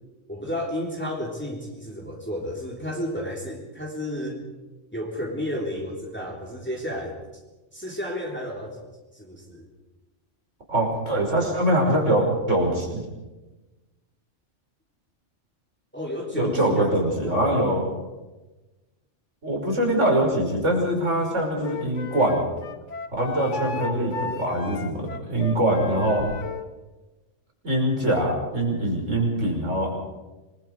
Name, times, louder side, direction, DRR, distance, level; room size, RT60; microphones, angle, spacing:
voice 1, 0.3-4.4 4.9-7.2 7.7-8.8 9.1-9.7 15.9-17.6 23.5-24.4, equal, 10° left, -2 dB, 3.6 m, -32 dB
voice 2, 10.7-13.0 16.3-17.8 19.4-22.4 23.1-24.1 24.4-26.2 27.6-30.1, right 1 dB, 85° right, 0 dB, 5.9 m, -23 dB
Wind instrument woodwind instrument, 21.6-26.7, left 5 dB, 80° left, 1.4 m, -34 dB
26.0 x 22.5 x 4.8 m, 1.1 s
omnidirectional pair, 1.2 m